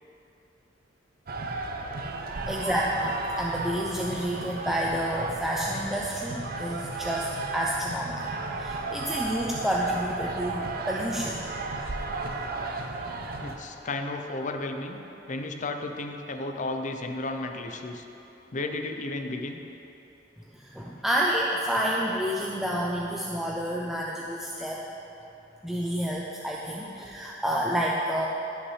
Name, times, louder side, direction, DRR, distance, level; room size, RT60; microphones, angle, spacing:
sound 1, 1.3-13.6, right 3 dB, 55° right, 0.6 m, -34 dB
voice 1, 2.5-8.3 8.6-11.4 20.5-24.8 25.6-28.3, equal, ahead, -4 dB, 0.5 m, -29 dB
voice 2, 13.4-15.0 15.3-18.0 18.5-19.6, left 2 dB, 45° left, 5 dB, 0.6 m, -33 dB
15.5 x 5.8 x 3.2 m, 3.0 s
head